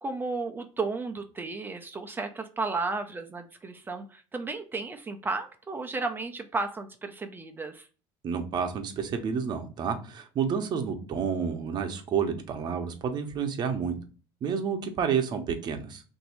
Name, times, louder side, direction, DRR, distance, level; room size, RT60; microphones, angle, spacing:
voice 1, 0.0-7.9, right 3 dB, 20° right, 5 dB, 0.5 m, -33 dB
voice 2, 8.2-13.9 14.4-16.0, right 6 dB, 40° right, 6 dB, 0.8 m, -30 dB
3.0 x 2.6 x 4.3 m, 0.37 s
cardioid pair, 125°, 11 cm